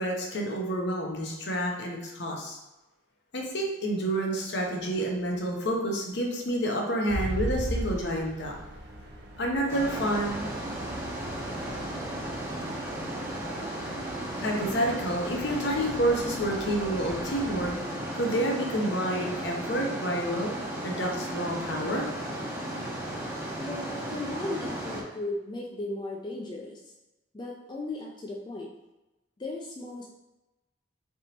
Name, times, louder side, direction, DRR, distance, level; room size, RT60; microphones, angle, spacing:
voice 1, 0.0-2.6 3.3-8.5 9.4-10.5 14.4-17.7 18.1-20.5 20.8-22.1, right 1 dB, 65° left, 0 dB, 0.7 m, -29 dB
sound 1, 7.1-17.7, right 1 dB, 55° right, 0.5 m, -39 dB
sound 2, 9.7-25.0, right 1 dB, 15° right, 0.6 m, -35 dB
voice 2, 23.6-26.8 27.3-28.7 29.4-30.0, left 2 dB, 25° left, -2 dB, 0.3 m, -36 dB
3.9 x 3.5 x 2.8 m, 1.0 s
head